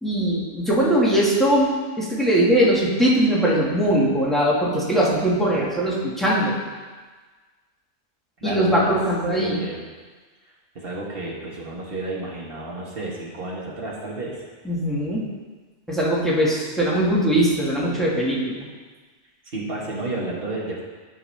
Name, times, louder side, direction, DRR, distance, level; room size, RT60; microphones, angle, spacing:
voice 1, 0.0-6.6 8.4-9.6 14.6-15.2 15.9-18.7, right 1 dB, ahead, -7 dB, 1.6 m, -21 dB
voice 2, 8.4-9.0 9.3-9.8 10.7-14.4 19.4-20.8, right 2 dB, 50° right, -4 dB, 1.5 m, -31 dB
12.0 x 4.7 x 3.3 m, 1.4 s
omnidirectional pair, 1.2 m